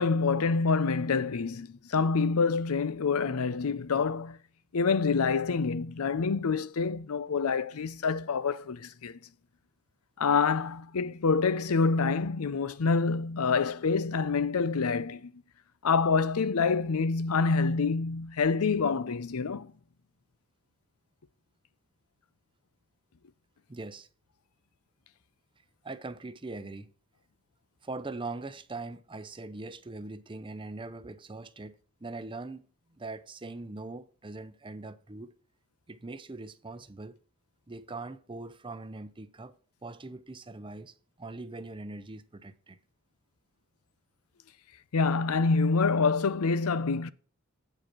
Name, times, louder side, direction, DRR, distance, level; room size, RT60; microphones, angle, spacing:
voice 1, 0.0-4.4 4.7-9.2 10.2-15.3 15.8-19.7 44.9-47.1, left 4 dB, 85° left, 0.6 m, -27 dB
voice 2, 23.7-24.1 25.8-26.9 27.8-32.6 33.0-35.3 35.9-37.2 37.7-39.6 39.8-42.8, right 3 dB, 25° right, 0.6 m, -41 dB
8.6 x 5.1 x 6.0 m
head